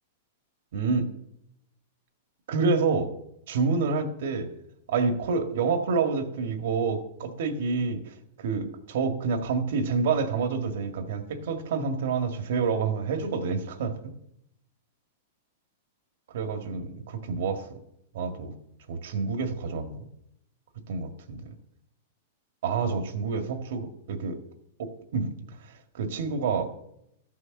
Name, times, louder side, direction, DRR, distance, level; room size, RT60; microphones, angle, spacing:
voice 1, 0.7-1.1 2.5-3.1 3.5-4.5 4.9-8.0 8.4-14.1 16.3-17.6 18.1-18.5 18.9-20.0 20.9-21.4 22.6-24.4 24.8-25.3 26.0-26.7, right 4 dB, 65° right, 6 dB, 1.7 m, -28 dB
14.0 x 6.5 x 6.5 m, 0.77 s
supercardioid pair, 160°, 0 cm